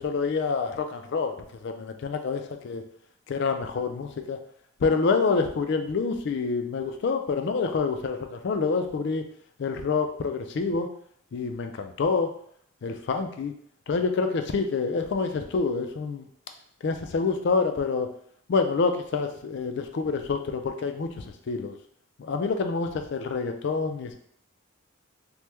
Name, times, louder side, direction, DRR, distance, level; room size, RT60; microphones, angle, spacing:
voice 1, 0.0-2.8 3.3-4.4 4.8-9.2 9.6-10.9 11.3-12.3 12.8-13.5 13.9-16.3 16.8-18.1 18.5-21.8 22.2-24.2, left 4 dB, 55° left, 6 dB, 0.4 m, -27 dB
3.0 x 2.2 x 3.3 m, 0.64 s
head